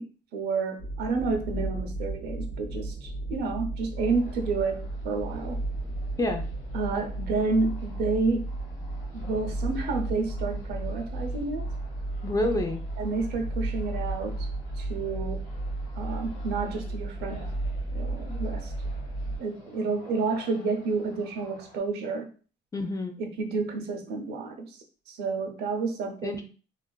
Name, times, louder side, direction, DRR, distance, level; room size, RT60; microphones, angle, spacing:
voice 1, 0.0-5.6 6.7-8.5 9.1-11.7 13.0-14.5 14.8-15.4 16.0-17.5 17.9-18.7 19.4-22.3 23.2-26.4, right 4 dB, 75° right, 5 dB, 0.6 m, -30 dB
sound 1, 0.8-19.4, right 2 dB, 85° left, 1.5 m, -34 dB
sound 2, 4.0-21.8, left 2 dB, 65° left, 1.1 m, -53 dB
voice 2, 12.2-12.8 22.7-23.2 26.2-26.4, left 1 dB, 20° left, 4 dB, 0.4 m, -28 dB
2.9 x 2.3 x 2.3 m, 0.37 s
cardioid pair, 110°, 17 cm